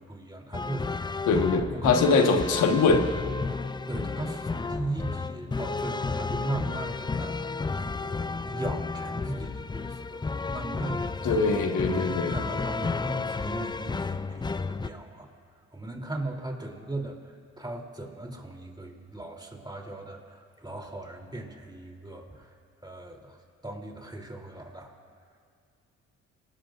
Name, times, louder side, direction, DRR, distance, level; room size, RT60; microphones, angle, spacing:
voice 1, 0.0-1.3 1.7-2.7 3.9-7.4 7.7-15.3 15.7-22.6 22.8-25.0, right 2 dB, 15° right, 1 dB, 3.1 m, -38 dB
sound 1, 0.5-14.9, left 4 dB, 15° left, 0.4 m, -32 dB
voice 2, 1.3-3.0 11.2-12.3, left 4 dB, 90° left, 3 dB, 1.4 m, -23 dB
26.5 x 19.5 x 2.5 m, 2.3 s
cardioid pair, 65°, 30 cm